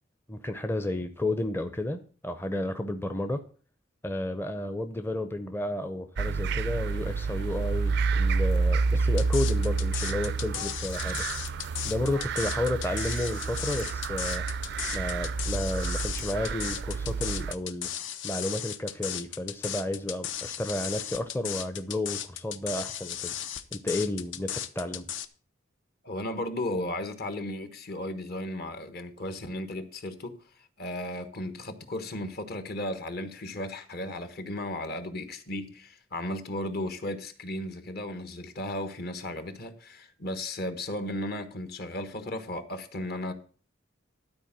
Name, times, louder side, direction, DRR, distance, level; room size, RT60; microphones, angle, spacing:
voice 1, 0.3-3.4 4.0-11.2 11.8-14.5 14.9-17.9 18.2-23.4 23.7-25.1, left 1 dB, 10° left, 0.6 m, -32 dB
sound 1, 6.2-17.5, right 4 dB, 60° right, 0.4 m, -29 dB
sound 2, 9.2-25.3, left 10 dB, 70° left, 0.7 m, -36 dB
voice 2, 26.0-30.4 30.8-43.3, left 1 dB, 55° left, 1.2 m, -35 dB
12.0 x 4.4 x 7.3 m
head